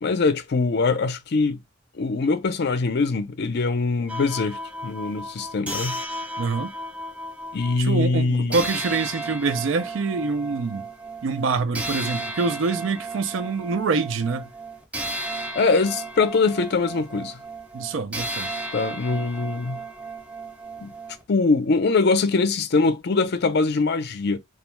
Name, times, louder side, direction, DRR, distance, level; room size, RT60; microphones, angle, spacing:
voice 1, 0.0-1.6 1.9-6.0 7.5-8.7 15.5-17.4 18.7-19.8 20.8-20.9 21.3-24.4, left 4 dB, 55° left, 0.5 m, -23 dB
sound 1, 4.1-7.8 8.5-21.2, right 1 dB, 5° right, 0.4 m, -34 dB
voice 2, 6.4-6.7 7.8-10.9 11.2-14.5 17.7-18.5, right 4 dB, 70° right, 0.4 m, -25 dB
2.3 x 2.2 x 3.0 m
head